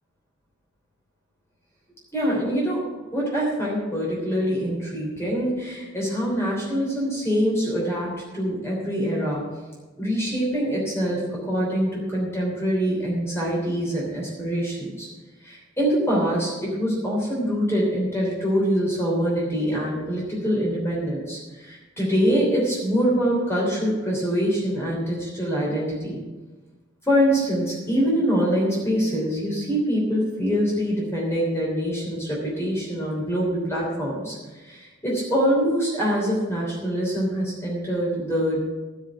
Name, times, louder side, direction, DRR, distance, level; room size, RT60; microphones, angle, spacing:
voice 1, 2.1-9.4 10.0-15.1 15.4-26.2 27.1-38.6, equal, 15° left, -4 dB, 3.2 m, -24 dB
12.5 x 5.9 x 8.8 m, 1.2 s
head